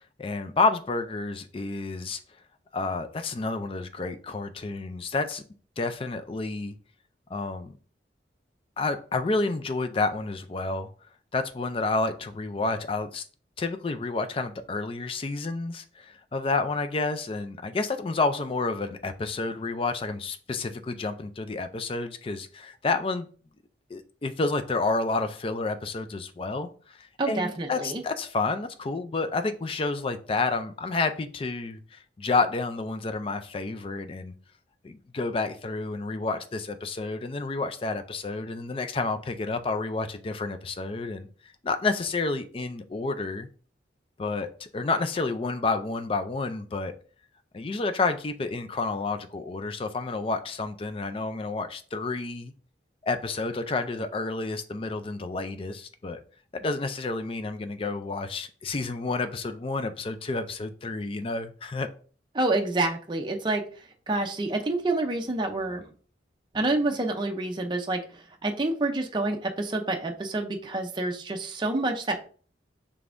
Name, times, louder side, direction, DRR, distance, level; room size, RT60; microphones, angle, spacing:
voice 1, 0.2-2.2 2.7-5.4 5.8-6.7 7.3-7.8 8.8-10.9 11.3-13.3 13.6-23.3 23.9-34.3 34.8-41.3 41.6-43.5 44.2-46.9 47.5-52.5 53.0-56.2 56.5-61.9, left 3 dB, 30° left, 8 dB, 0.4 m, -30 dB
voice 2, 27.2-28.0 62.3-65.8 66.5-72.2, right 2 dB, 25° right, 3 dB, 0.5 m, -28 dB
5.2 x 3.4 x 2.5 m, 0.41 s
head